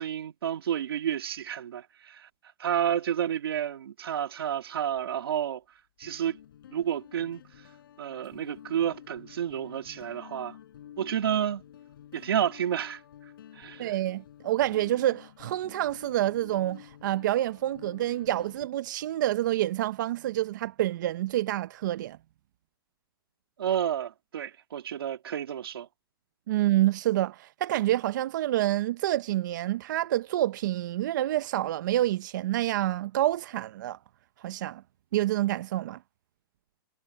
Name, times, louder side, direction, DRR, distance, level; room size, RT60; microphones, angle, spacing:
voice 1, 0.0-2.3 2.6-5.6 6.0-6.4 6.7-7.4 8.0-10.6 11.0-11.6 12.1-13.0 13.6-13.9 23.6-25.9, right 9 dB, 85° right, 1.8 m, -30 dB
Guitar, 4.9-5.0 6.0-18.7, left 10 dB, 70° left, 5.0 m, -50 dB
voice 2, 13.8-22.2 26.5-34.0 34.4-34.8 35.1-36.0, right 14 dB, 55° right, 0.7 m, -28 dB
hypercardioid pair, 160°, 12 cm